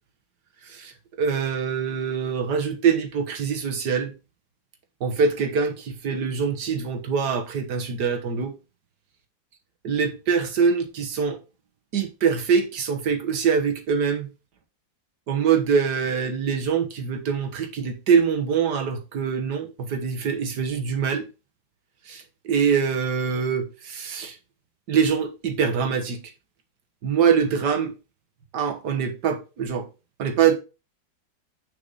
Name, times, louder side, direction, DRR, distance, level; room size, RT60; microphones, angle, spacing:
voice 1, 1.2-4.1 5.0-8.5 9.8-11.4 11.9-14.3 15.3-21.3 22.1-24.4 24.9-26.2 27.0-27.9 28.5-29.9 30.2-30.5, right 6 dB, 65° right, 1.8 m, -24 dB
6.6 x 5.4 x 4.0 m
omnidirectional pair, 2.0 m